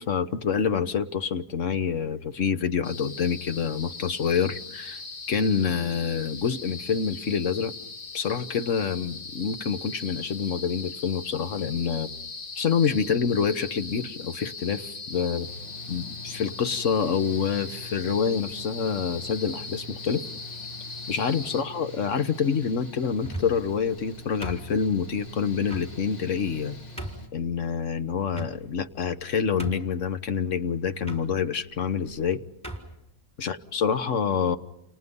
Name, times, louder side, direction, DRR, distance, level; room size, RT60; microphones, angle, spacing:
voice 1, 0.0-5.0 5.3-7.7 8.1-12.1 12.6-15.5 15.9-20.2 21.1-26.7 27.3-32.4 33.4-34.6, left 6 dB, 65° left, 10 dB, 1.6 m, -27 dB
sound 1, 2.8-21.6, left 4 dB, 85° left, 2.2 m, -40 dB
Mechanical fan, 15.4-27.3, left 1 dB, 40° left, 2.0 m, -44 dB
sound 2, 23.2-23.7 24.4-25.1 25.7-25.9 26.5-26.6 27.0-27.3 28.3-28.9 29.2-29.3 29.6-30.1 31.0-31.2 32.1-32.2 32.6-32.9, right 1 dB, 5° left, 4.2 m, -36 dB
29.5 x 29.0 x 5.5 m, 0.86 s
omnidirectional pair, 1.4 m